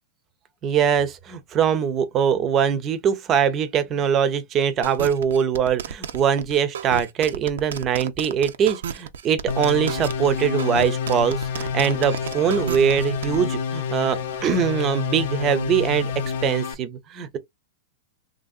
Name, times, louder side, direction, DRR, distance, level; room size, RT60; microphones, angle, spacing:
voice 1, 0.6-17.4, right 8 dB, 25° right, 0.6 m, -22 dB
sound 1, 4.8-13.4, right 8 dB, 80° right, 0.5 m, -32 dB
sound 2, 9.5-16.7, left 6 dB, 65° left, 0.5 m, -28 dB
3.1 x 2.6 x 2.4 m
hypercardioid pair, 145°, 0 cm